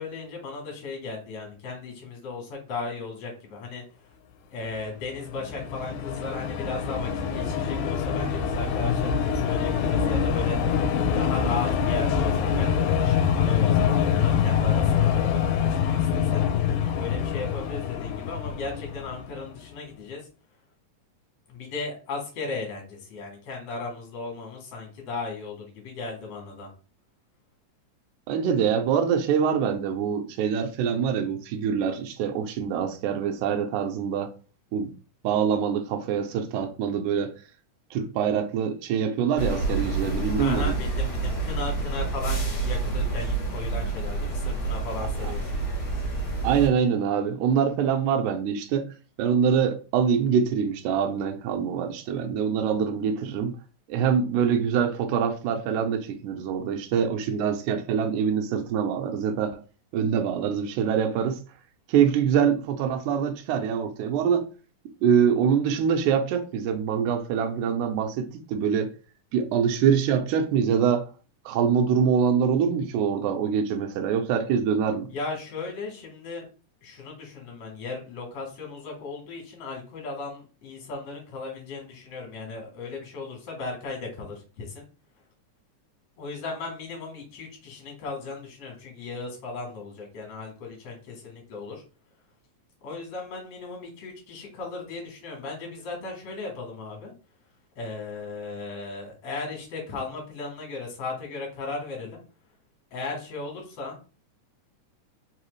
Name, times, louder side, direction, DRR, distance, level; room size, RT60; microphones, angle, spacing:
voice 1, 0.0-4.1 4.5-10.6 11.1-16.4 16.9-20.3 21.5-26.7 40.4-45.5 75.1-76.5 76.8-84.9 86.2-91.8 92.8-97.1 97.8-102.2 102.9-104.0, left 3 dB, 60° left, 2.1 m, -36 dB
sound 1, 5.0-19.5, left 7 dB, 80° left, 2.0 m, -25 dB
voice 2, 28.3-34.3 34.7-34.9 35.2-37.4 37.9-40.7 46.4-48.9 49.2-53.5 53.9-59.6 59.9-61.4 61.9-64.5 65.0-68.9 69.3-71.1 71.5-75.1, right 7 dB, 80° right, 1.9 m, -24 dB
sound 2, 39.4-46.7, right 3 dB, 40° left, 1.3 m, -28 dB
4.8 x 2.9 x 3.0 m
omnidirectional pair, 3.7 m